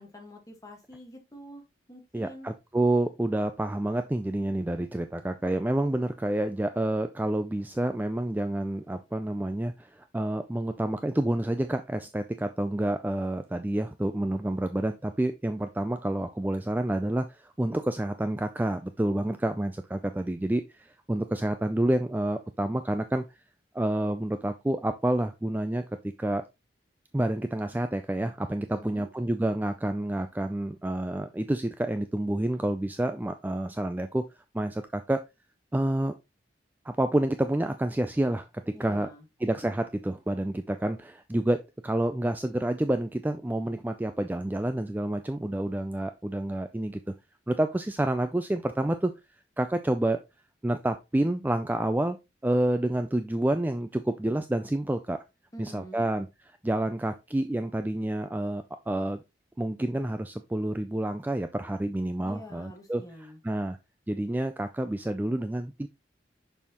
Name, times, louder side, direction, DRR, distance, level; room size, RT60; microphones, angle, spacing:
voice 1, 0.0-1.6 1.9-2.5 28.6-29.1 38.7-39.2 55.5-56.0 62.2-63.4, equal, 20° left, 2 dB, 1.5 m, -46 dB
voice 2, 2.1-23.3 23.7-26.4 27.1-34.2 34.5-35.2 35.7-36.2 36.8-39.1 39.4-47.1 47.5-49.1 49.6-50.2 50.6-52.2 52.4-55.2 55.6-56.3 56.6-59.2 59.6-63.8 64.1-65.9, right 1 dB, 10° right, 8 dB, 0.3 m, -29 dB
6.5 x 5.5 x 2.9 m, 0.24 s
head